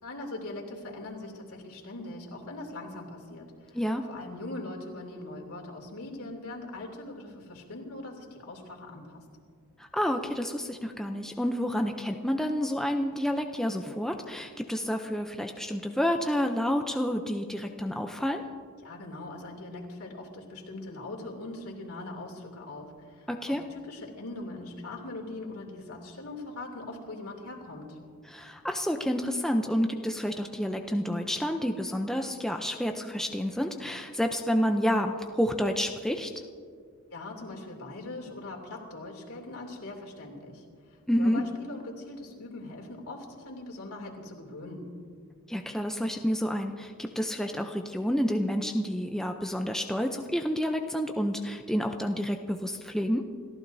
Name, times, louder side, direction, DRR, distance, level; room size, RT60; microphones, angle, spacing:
voice 1, 0.0-3.8 4.1-9.2 18.8-28.0 37.1-40.6 41.2-44.8, left 2 dB, 70° left, 0 dB, 2.9 m, -41 dB
voice 2, 9.9-18.4 23.3-23.6 28.3-36.3 41.1-41.4 45.5-53.2, equal, ahead, 3 dB, 0.6 m, -29 dB
29.5 x 14.5 x 2.7 m, 2.1 s
head